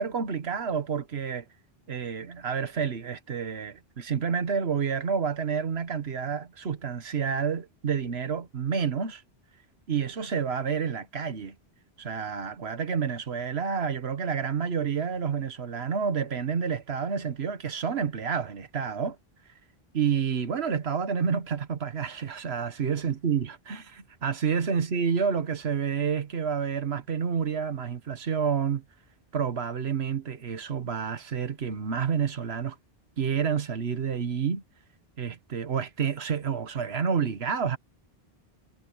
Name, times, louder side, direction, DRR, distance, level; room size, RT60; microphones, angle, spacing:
voice 1, 0.0-1.4 1.9-9.2 9.9-11.5 12.0-19.2 19.9-28.8 29.3-32.8 33.2-34.6 35.2-37.8, right 6 dB, 85° right, 1.5 m, -29 dB
omnidirectional pair, 1.0 m